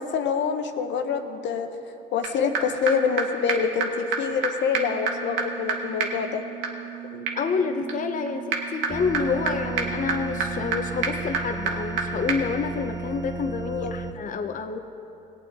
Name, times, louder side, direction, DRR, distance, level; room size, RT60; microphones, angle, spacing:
voice 1, 0.0-1.7 2.1-6.4 13.8-13.9, left 6 dB, 65° left, 6 dB, 0.9 m, -26 dB
sound 1, 2.2-2.3 2.5-2.6 2.9-3.0 3.2-3.3 3.5-3.6 3.8-3.9 4.1-4.2 4.4-4.5 4.7-12.0 12.3-12.4, right 5 dB, 85° right, 1.2 m, -29 dB
voice 2, 7.1-14.8, left 5 dB, 40° left, 6 dB, 0.7 m, -28 dB
sound 2, 8.9-14.1, right 3 dB, 20° right, 0.7 m, -34 dB
18.0 x 8.4 x 3.6 m, 3.0 s
supercardioid pair, 70°, 20 cm